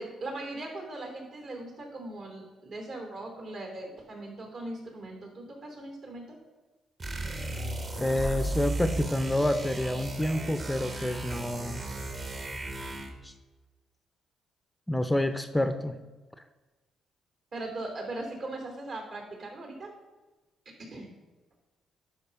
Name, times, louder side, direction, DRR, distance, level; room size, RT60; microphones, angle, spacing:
voice 1, 0.0-6.2 17.5-19.9 20.8-21.1, right 2 dB, 60° right, 2 dB, 3.0 m, -39 dB
sound 1, 7.0-13.2, right 2 dB, 40° right, 1.4 m, -35 dB
voice 2, 8.0-11.9 13.2-13.3 14.9-16.0, left 1 dB, 10° left, 9 dB, 0.5 m, -28 dB
11.0 x 4.5 x 5.8 m, 1.2 s
cardioid pair, 90°, 0 cm